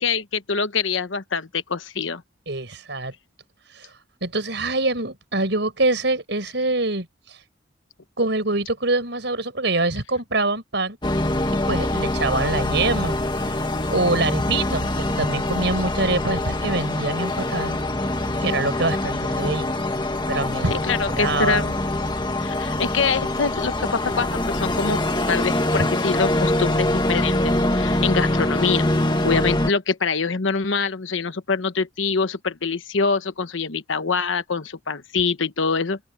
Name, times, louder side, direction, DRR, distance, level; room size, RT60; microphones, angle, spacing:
voice 1, 0.0-2.2 20.9-21.8 22.4-25.0 25.3-28.9 29.2-36.0, left 5 dB, 85° left, 1.1 m, -24 dB
voice 2, 2.5-3.1 3.7-3.9 4.2-7.4 8.2-11.0 11.5-13.6 13.9-17.8 18.4-19.7 20.3-21.6 25.8-25.9, right 2 dB, 65° right, 5.1 m, -25 dB
sound 1, 11.0-29.7, left 1 dB, 25° left, 1.9 m, -24 dB
open air
head